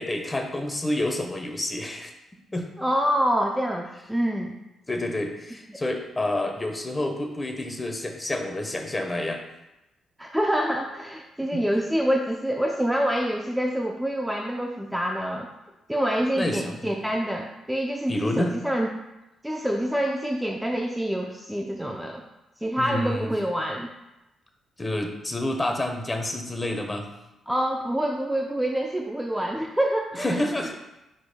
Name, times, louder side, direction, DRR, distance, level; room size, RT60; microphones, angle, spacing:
voice 1, 0.0-2.1 2.5-2.7 4.9-9.4 11.5-11.6 16.4-16.9 18.1-18.5 22.8-23.3 24.8-27.1 30.2-30.8, left 1 dB, 15° left, 4 dB, 0.9 m, -29 dB
voice 2, 2.8-4.6 5.7-5.8 10.2-15.5 15.9-18.9 19.4-22.2 22.6-23.9 27.5-30.4, equal, 5° right, 1 dB, 0.5 m, -26 dB
9.4 x 5.1 x 2.2 m, 0.94 s
cardioid pair, 110°, 0 cm